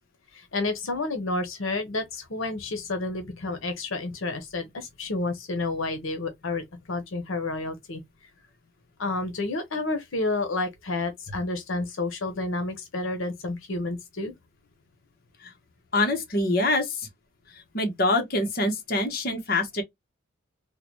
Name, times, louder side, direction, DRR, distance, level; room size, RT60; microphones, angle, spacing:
voice 1, 0.3-8.0 9.0-14.3, left 2 dB, 80° left, 0.8 m, -30 dB
voice 2, 15.9-17.1 17.7-19.8, left 2 dB, 45° left, 1.0 m, -25 dB
3.7 x 2.2 x 3.1 m
head